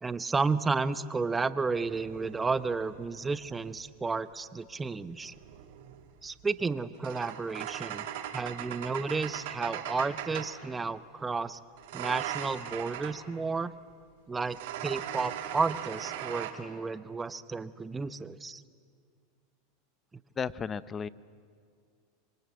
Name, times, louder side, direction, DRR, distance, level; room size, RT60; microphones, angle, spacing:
voice 1, 0.0-5.3 6.2-8.1 8.3-11.6 11.9-13.7 14.3-18.6, right 4 dB, 15° right, 14 dB, 0.9 m, -32 dB
sound 1, 1.7-3.9 5.1-10.6 11.8-13.2 14.4-16.5, right 11 dB, 75° right, 2.8 m, -40 dB
voice 2, 20.4-21.1, left 6 dB, 20° left, 18 dB, 0.7 m, -34 dB
26.0 x 22.5 x 9.3 m, 2.2 s
supercardioid pair, 130°, 0 cm